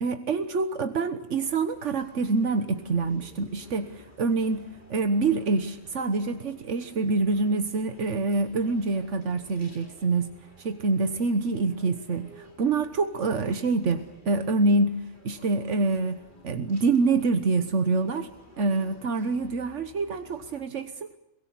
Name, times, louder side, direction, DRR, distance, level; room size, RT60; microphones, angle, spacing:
voice 1, 0.0-18.3 18.6-21.1, right 3 dB, 85° right, 8 dB, 1.6 m, -26 dB
sound 1, 0.9-20.6, left 1 dB, 40° left, 4.3 m, -53 dB
26.0 x 23.0 x 8.5 m, 0.89 s
omnidirectional pair, 1.2 m